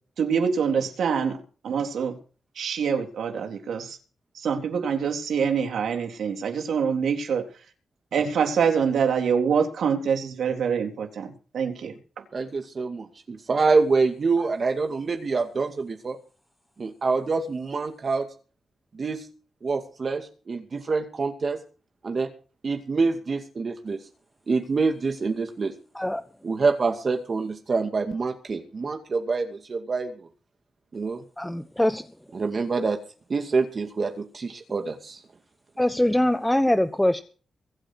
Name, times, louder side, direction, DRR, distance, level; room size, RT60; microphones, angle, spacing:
voice 1, 0.2-1.4 1.6-2.2 2.6-4.0 4.4-7.4 8.1-12.0, right 6 dB, 80° right, 4 dB, 3.7 m, -25 dB
voice 2, 12.3-16.2 16.8-18.2 18.9-19.3 19.6-21.6 22.0-22.3 22.6-24.0 24.5-25.7 26.4-30.3 30.9-31.2 32.3-33.0 33.3-35.2, right 4 dB, 50° right, 4 dB, 2.4 m, -26 dB
voice 3, 25.9-26.3 31.4-32.1 35.8-37.2, left 1 dB, 10° left, 10 dB, 1.1 m, -23 dB
23.5 x 8.8 x 4.7 m, 0.39 s
cardioid pair, 60°, 0 cm